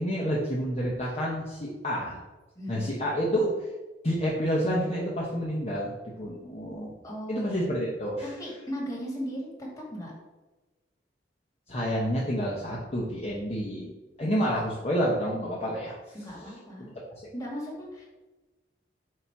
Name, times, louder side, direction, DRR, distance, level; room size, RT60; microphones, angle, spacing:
voice 1, 0.0-2.2 2.7-3.7 4.0-6.9 7.3-8.3 11.7-13.9 14.2-16.1 16.4-16.5, equal, 35° left, -5 dB, 1.1 m, -29 dB
voice 2, 2.6-3.0 7.0-7.5 8.2-10.1 14.4-14.5 16.1-16.9 17.3-18.0, equal, 20° left, -4 dB, 2.1 m, -37 dB
7.9 x 2.9 x 5.9 m, 1.1 s
head